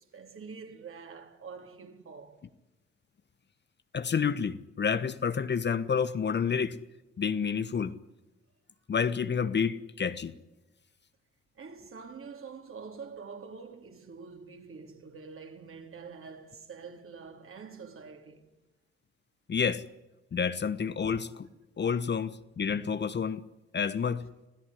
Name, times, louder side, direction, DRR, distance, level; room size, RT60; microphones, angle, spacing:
voice 1, 0.1-2.4 11.6-18.4, right 5 dB, 40° right, 4.0 m, -46 dB
voice 2, 3.9-6.8 7.2-7.9 8.9-10.3 19.5-19.8 20.3-21.5 21.8-23.4 23.7-24.3, left 6 dB, 30° left, 1.2 m, -29 dB
27.0 x 17.0 x 10.0 m
figure-of-eight pair, 45°, 33 cm